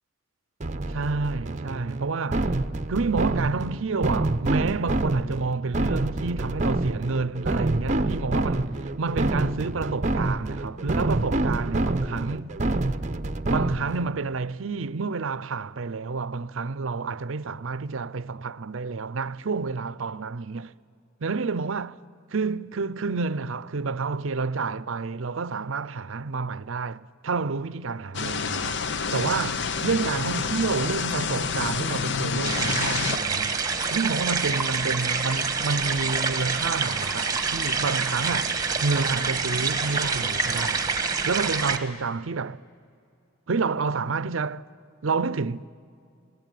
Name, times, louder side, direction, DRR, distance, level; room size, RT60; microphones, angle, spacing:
sound 1, 0.6-14.1, right 2 dB, 35° right, 0.7 m, -27 dB
voice 1, 0.9-2.6 2.9-12.5 13.5-20.7 21.2-22.0 22.3-28.8 29.1-33.6 33.9-40.9 41.3-42.6 43.5-44.6 45.0-45.7, right 4 dB, 70° right, 0.6 m, -29 dB
sound 2, 28.1-33.2, left 5 dB, 55° left, 0.7 m, -28 dB
sound 3, 32.4-41.8, right 4 dB, 20° right, 1.4 m, -27 dB
28.5 x 19.0 x 9.3 m
head